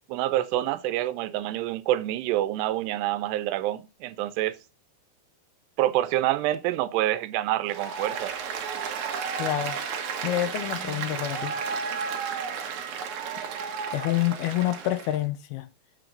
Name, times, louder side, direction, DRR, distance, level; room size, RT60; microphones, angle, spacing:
voice 1, 0.1-4.6 5.8-8.3, right 14 dB, 85° right, 2.7 m, -27 dB
Applause, 7.7-15.2, right 6 dB, 70° right, 1.8 m, -33 dB
voice 2, 9.4-9.8 10.2-11.5 13.9-15.7, left 14 dB, 80° left, 2.4 m, -27 dB
7.7 x 6.6 x 3.8 m
omnidirectional pair, 4.8 m